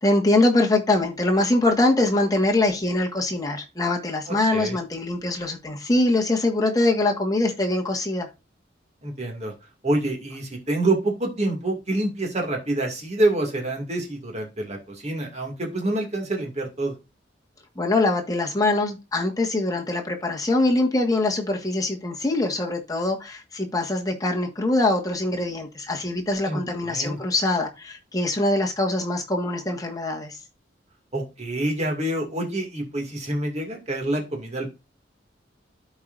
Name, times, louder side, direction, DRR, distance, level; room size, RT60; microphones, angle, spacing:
voice 1, 0.0-8.3 17.7-30.4, left 2 dB, 20° left, 1.6 m, -23 dB
voice 2, 4.3-4.8 9.0-9.5 9.8-16.9 26.4-27.2 31.1-34.7, right 2 dB, 40° right, 2.3 m, -27 dB
13.0 x 4.8 x 2.6 m
head